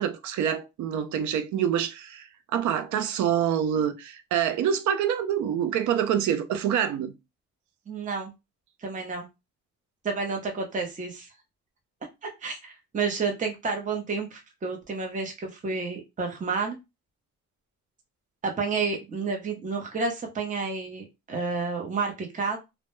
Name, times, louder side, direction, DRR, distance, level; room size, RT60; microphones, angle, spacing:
voice 1, 0.0-7.1, right 9 dB, 75° right, 0.5 m, -26 dB
voice 2, 7.9-8.3 8.8-9.3 10.0-11.3 12.2-16.8 18.4-22.6, right 4 dB, 25° right, 0.7 m, -30 dB
2.1 x 2.0 x 2.9 m
cardioid pair, 90°, 30 cm